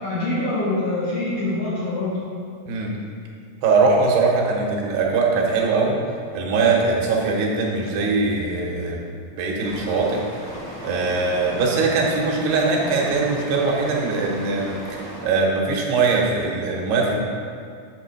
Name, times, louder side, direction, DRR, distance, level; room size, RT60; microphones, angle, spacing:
voice 1, 0.0-2.2, left 2 dB, 60° left, -8 dB, 1.8 m, -25 dB
voice 2, 3.6-6.0 6.3-9.0 9.3-10.2 10.8-17.2, right 4 dB, 85° right, -2 dB, 3.0 m, -21 dB
sound 1, 9.6-15.2, equal, 45° right, 1.5 m, -36 dB
8.4 x 3.6 x 6.5 m, 2.3 s
omnidirectional pair, 4.5 m